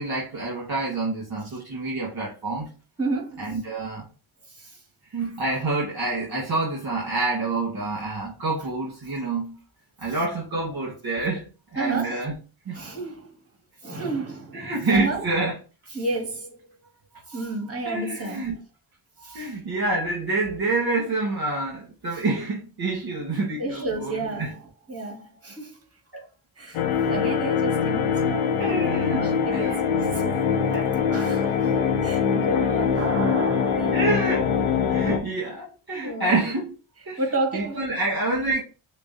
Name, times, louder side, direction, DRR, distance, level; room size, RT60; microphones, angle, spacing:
voice 1, 0.0-2.7 3.4-4.0 5.1-9.6 10.0-11.4 11.7-12.3 12.7-12.8 14.5-15.5 17.8-18.6 19.3-24.1 24.4-24.5 26.1-26.3 28.6-29.8 30.7-30.9 33.9-34.6 34.9-36.7 37.1-37.2 37.5-38.6, right 2 dB, 45° right, 1.5 m, -27 dB
voice 2, 3.0-3.6 4.5-4.8 5.2-5.3 10.1-10.2 11.8-12.3 12.7-13.4 13.8-15.3 15.9-16.8 17.3-18.6 19.2-19.6 22.1-22.2 23.6-25.8 26.6-30.6 31.1-34.1 35.9-36.4 37.2-37.9, right 2 dB, 30° right, 2.0 m, -32 dB
sound 1, 26.7-35.2, left 6 dB, 85° left, 0.8 m, -23 dB
6.5 x 2.2 x 2.7 m
supercardioid pair, 45°, 50 cm